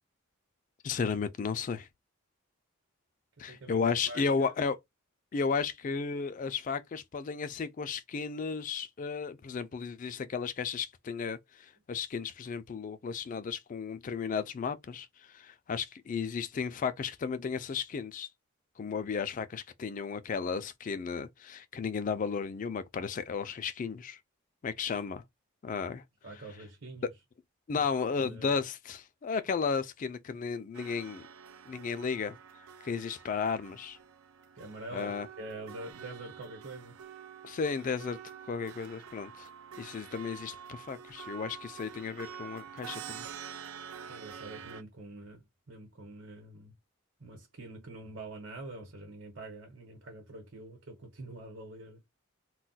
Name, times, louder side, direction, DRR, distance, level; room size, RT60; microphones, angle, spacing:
voice 1, 0.8-1.9 3.4-4.8 5.3-18.3 18.8-24.2 24.6-25.2 25.6-26.0 27.7-31.3 31.7-32.4 32.8-34.0 34.9-35.3 37.4-38.2 38.5-39.5 39.8-43.3, left 5 dB, 40° left, 0.3 m, -34 dB
voice 2, 3.4-4.5 26.2-27.1 27.7-28.5 34.6-37.0 44.1-46.7 47.2-52.0, right 2 dB, 60° right, 1.0 m, -46 dB
sound 1, 30.7-44.8, right 7 dB, 80° right, 0.4 m, -47 dB
2.2 x 2.2 x 3.9 m
head